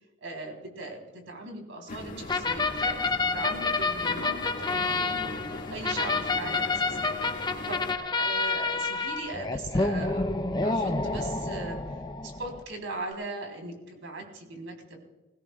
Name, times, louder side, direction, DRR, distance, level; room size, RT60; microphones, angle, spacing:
voice 1, 0.2-5.3 5.7-7.0 7.7-10.3 10.6-11.8 12.2-15.1, right 2 dB, 75° right, 2 dB, 3.7 m, -39 dB
sound 1, 1.9-7.9, left 1 dB, 45° left, 2.1 m, -39 dB
sound 2, 2.3-12.6, left 3 dB, 20° left, 0.7 m, -29 dB
20.5 x 16.5 x 2.4 m, 1.2 s
head